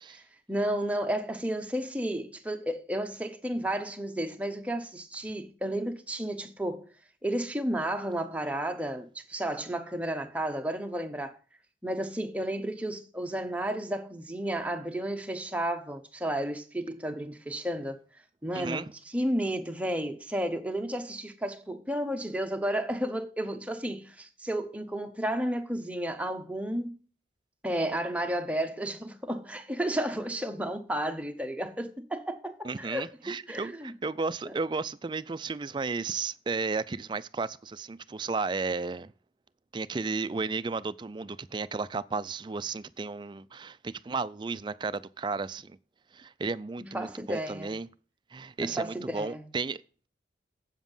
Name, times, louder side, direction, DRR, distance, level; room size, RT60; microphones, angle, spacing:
voice 1, 0.1-6.9 7.2-11.4 11.8-18.0 18.4-27.0 27.6-33.9 34.5-34.6 46.8-47.8 48.6-49.5, right 1 dB, 5° right, 0.9 m, -32 dB
voice 2, 18.5-18.9 32.6-39.1 39.7-45.8 46.1-47.9 48.3-50.1, right 4 dB, 25° right, 0.3 m, -34 dB
8.1 x 7.3 x 5.5 m
head